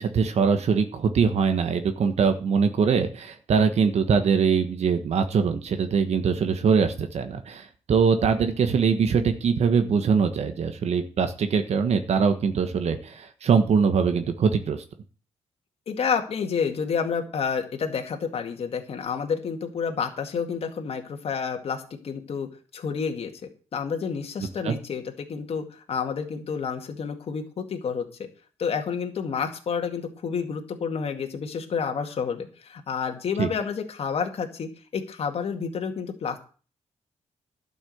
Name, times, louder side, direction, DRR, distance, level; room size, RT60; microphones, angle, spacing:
voice 1, 0.0-14.8 24.6-24.7 33.4-33.5, right 6 dB, 60° right, 8 dB, 1.3 m, -22 dB
voice 2, 15.9-22.5 22.7-23.3 23.7-28.1 28.6-36.4, left 6 dB, 55° left, 4 dB, 2.1 m, -29 dB
12.0 x 6.2 x 7.8 m, 0.38 s
cardioid pair, 115°, 12 cm